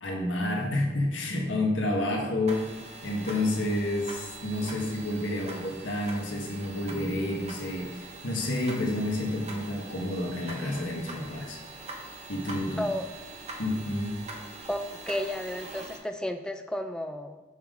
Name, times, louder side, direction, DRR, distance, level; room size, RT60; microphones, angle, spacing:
voice 1, 0.0-2.8 3.0-11.6 12.3-12.9 13.6-14.2, left 1 dB, 90° left, -1 dB, 1.4 m, -29 dB
sound 1, 2.5-16.0, right 2 dB, 35° right, 1.0 m, -43 dB
voice 2, 14.7-17.4, left 1 dB, 5° left, 7 dB, 0.3 m, -32 dB
7.3 x 5.5 x 3.8 m, 1.2 s
head